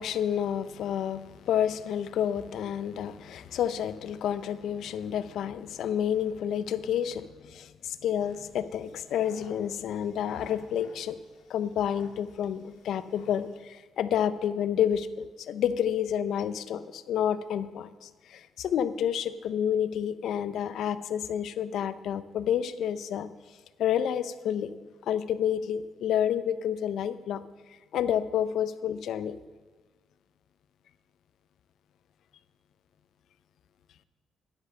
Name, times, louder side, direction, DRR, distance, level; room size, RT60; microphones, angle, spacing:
voice 1, 0.0-11.2 11.5-23.3 23.8-24.7 25.1-27.4 27.9-29.4, left 9 dB, 75° left, 14 dB, 0.6 m, -29 dB
sound 1, 8.1-13.7, left 5 dB, 90° left, 1.6 m, -55 dB
10.0 x 8.3 x 6.7 m, 1.4 s
cardioid pair, 85°, 0 cm